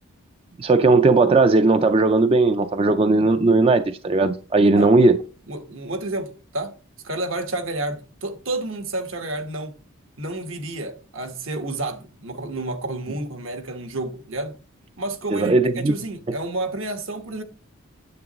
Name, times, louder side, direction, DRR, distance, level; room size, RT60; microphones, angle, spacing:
voice 1, 0.6-5.2 15.3-15.9, right 3 dB, 25° right, 0.3 m, -17 dB
voice 2, 4.6-4.9 5.5-6.7 7.0-9.8 10.2-14.6 15.0-17.4, right 2 dB, 70° right, 1.3 m, -30 dB
9.4 x 7.7 x 3.0 m
head